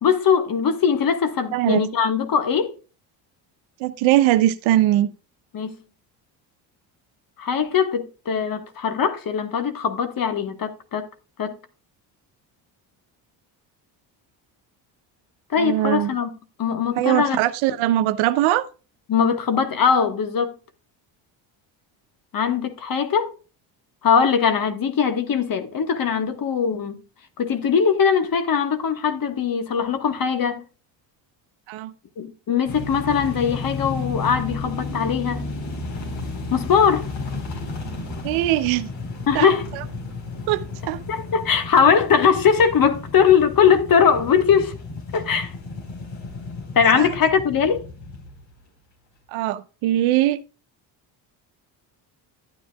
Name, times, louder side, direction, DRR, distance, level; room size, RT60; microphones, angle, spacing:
voice 1, 0.0-2.8 5.5-5.8 7.4-11.1 11.4-11.6 15.5-16.3 16.6-17.4 19.1-20.5 22.3-23.3 24.0-27.0 27.4-30.6 32.2-35.4 36.5-37.1 39.3-39.7 41.1-44.7 45.1-45.5 46.7-47.9, left 7 dB, 45° left, 1.6 m, -20 dB
voice 2, 1.5-1.8 3.8-5.1 15.6-16.1 17.0-18.7 31.7-31.9 38.2-38.9 39.3-39.5 40.5-41.0 47.0-47.1 49.3-50.4, right 14 dB, 85° right, 0.9 m, -21 dB
sound 1, 32.7-48.6, left 3 dB, 65° left, 4.2 m, -33 dB
11.5 x 9.4 x 2.3 m
supercardioid pair, 80°, 46 cm